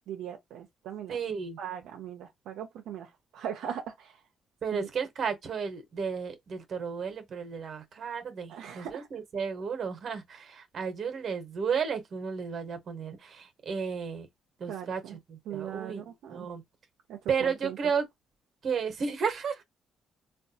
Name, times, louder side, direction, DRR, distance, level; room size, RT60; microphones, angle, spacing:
voice 1, 0.1-1.2 1.6-4.2 4.7-4.9 8.5-9.1 14.7-15.2 15.5-16.5 17.1-17.8, right 9 dB, 85° right, 0.5 m, -39 dB
voice 2, 1.1-1.6 4.6-14.3 14.6-15.0 15.3-16.0 16.3-16.6 17.3-18.0 18.6-19.6, right 6 dB, 55° right, 0.9 m, -33 dB
3.4 x 2.3 x 2.7 m
cardioid pair, 90°, 0 cm